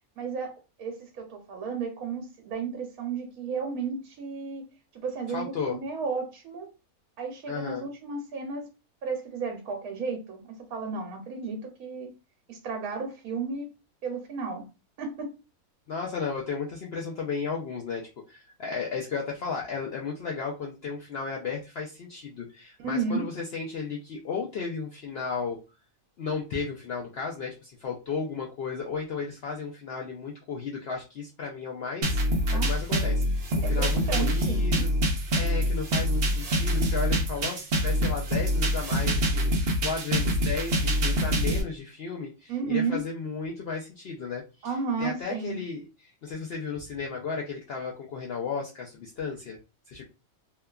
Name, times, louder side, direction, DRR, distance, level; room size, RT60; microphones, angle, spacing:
voice 1, 0.2-4.6 4.9-6.7 7.2-8.7 9.0-12.1 12.5-13.7 14.0-14.7 15.0-15.4 22.8-23.3 32.5-33.1 33.6-34.9 42.5-43.0 44.6-45.6, right 5 dB, 75° right, 1.0 m, -33 dB
voice 2, 5.3-5.8 7.5-7.9 15.9-25.6 26.2-32.2 32.5-34.9 35.3-49.6 49.9-50.0, left 5 dB, 75° left, 0.5 m, -34 dB
sound 1, 32.0-41.6, equal, 60° right, 0.7 m, -25 dB
2.8 x 2.2 x 2.3 m
omnidirectional pair, 1.6 m